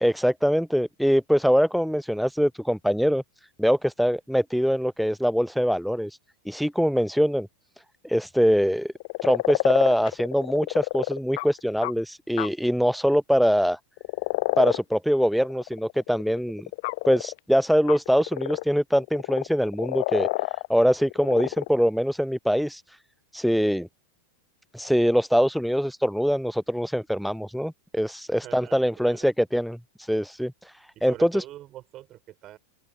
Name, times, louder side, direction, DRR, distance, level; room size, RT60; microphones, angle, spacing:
voice 1, 0.0-3.2 3.6-6.2 6.5-7.5 8.0-8.9 9.2-13.8 14.6-16.7 17.1-20.3 20.7-23.0 23.3-23.9 24.7-31.4, equal, ahead, 0.4 m, -23 dB
sound 1, 9.0-11.9 12.4-12.5 14.0-14.8 15.2-17.4 17.9-18.6 19.0-20.7 21.0-21.7, left 24 dB, 50° left, 0.6 m, -29 dB
voice 2, 28.3-29.3 31.0-32.6, right 14 dB, 35° right, 7.9 m, -44 dB
open air
figure-of-eight pair, 90°, 0 cm